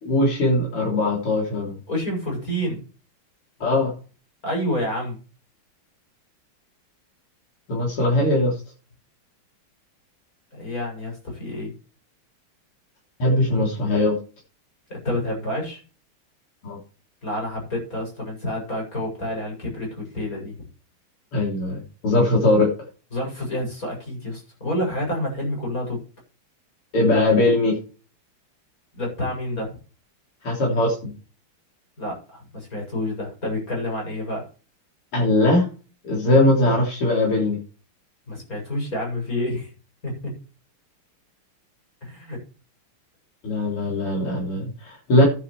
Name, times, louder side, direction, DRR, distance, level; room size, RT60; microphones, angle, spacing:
voice 1, 0.0-1.8 3.6-3.9 7.7-8.5 13.2-14.1 16.6-16.8 21.3-22.7 26.9-27.8 30.4-31.1 35.1-35.7 36.0-37.6 43.4-45.3, left 2 dB, 90° left, -2 dB, 4.5 m, -20 dB
voice 2, 1.9-2.8 4.4-5.2 10.5-11.7 14.9-15.8 17.2-20.5 23.1-26.0 28.9-29.7 32.0-34.5 38.3-39.7 40.0-40.1 42.0-42.4, left 1 dB, 40° left, 0 dB, 8.1 m, -28 dB
14.5 x 11.0 x 3.3 m, 0.36 s
omnidirectional pair, 2.4 m